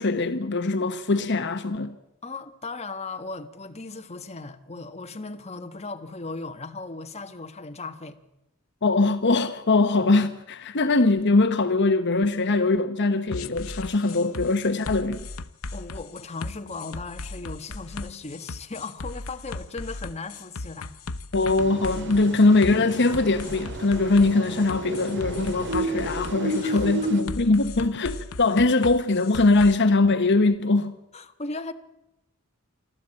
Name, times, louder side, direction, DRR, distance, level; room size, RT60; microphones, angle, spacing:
voice 1, 0.0-1.9 8.8-15.3 21.3-31.0, left 3 dB, 55° left, 1.0 m, -22 dB
voice 2, 2.2-8.2 15.7-21.0 26.6-26.9 27.8-27.9 31.1-31.7, left 3 dB, 30° left, 1.4 m, -37 dB
sound 1, 13.3-29.7, left 3 dB, 85° left, 0.9 m, -37 dB
sound 2, 21.6-27.2, right 1 dB, 60° right, 2.2 m, -32 dB
27.0 x 12.5 x 8.8 m
head